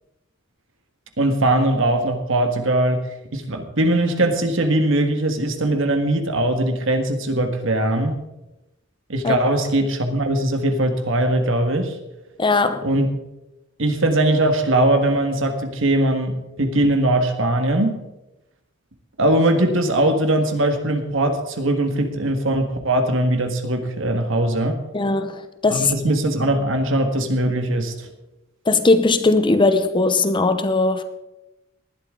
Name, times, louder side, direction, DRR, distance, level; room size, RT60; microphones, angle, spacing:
voice 1, 1.2-3.0 3.3-8.2 9.1-11.9 12.8-13.1 13.8-18.0 19.2-24.8 25.7-28.1, right 1 dB, 70° right, 6 dB, 1.7 m, -20 dB
voice 2, 12.4-12.9 24.9-25.9 28.7-31.0, left 3 dB, 25° left, 10 dB, 0.8 m, -19 dB
19.0 x 11.5 x 3.9 m, 0.96 s
head